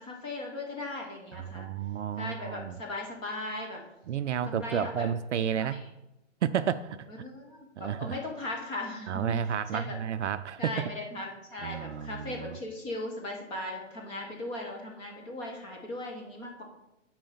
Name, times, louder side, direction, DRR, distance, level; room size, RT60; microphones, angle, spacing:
voice 1, 0.0-1.7 2.2-3.8 4.5-5.1 5.6-5.8 7.2-9.4 9.7-10.0 10.6-16.6, left 2 dB, 15° left, 0 dB, 1.0 m, -38 dB
voice 2, 1.3-2.8 4.1-5.8 6.4-7.1 7.8-8.2 9.1-10.9 11.6-12.6, right 8 dB, 65° right, 12 dB, 0.5 m, -31 dB
8.9 x 4.8 x 5.5 m, 0.94 s
hypercardioid pair, 155°, 39 cm